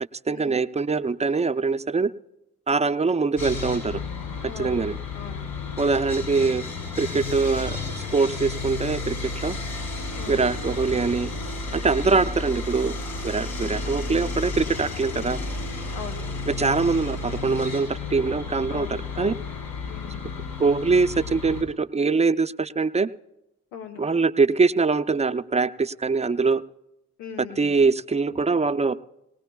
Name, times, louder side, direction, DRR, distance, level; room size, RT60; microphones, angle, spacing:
voice 1, 0.3-2.1 2.7-4.0 4.6-5.0 5.8-6.6 7.0-7.8 8.1-9.6 10.3-11.3 11.7-12.9 13.2-15.4 16.6-19.3 20.6-23.1 24.0-26.6 27.6-28.9, right 4 dB, 15° right, 11 dB, 0.6 m, -23 dB
Sawing, 3.4-21.6, left 3 dB, 65° left, 4.5 m, -32 dB
voice 2, 4.4-4.9 5.1-5.5 10.1-10.5 15.9-16.3 18.7-19.5 19.9-20.3 23.7-24.0 27.2-27.8, left 8 dB, 85° left, 6 dB, 1.1 m, -40 dB
20.5 x 18.5 x 2.3 m, 0.89 s
hypercardioid pair, 40°, 38 cm